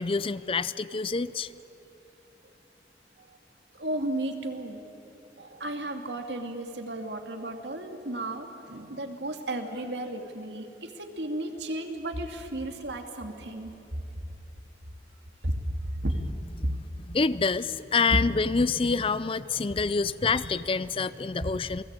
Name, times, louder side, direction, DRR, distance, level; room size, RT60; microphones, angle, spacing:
voice 1, 0.0-1.5 17.1-21.8, left 4 dB, 30° left, 17 dB, 0.5 m, -27 dB
voice 2, 3.8-4.8 5.4-14.0 15.4-15.6 15.9-16.2 16.6-16.7, right 1 dB, 80° right, 5 dB, 2.5 m, -34 dB
28.5 x 19.5 x 9.0 m, 2.8 s
head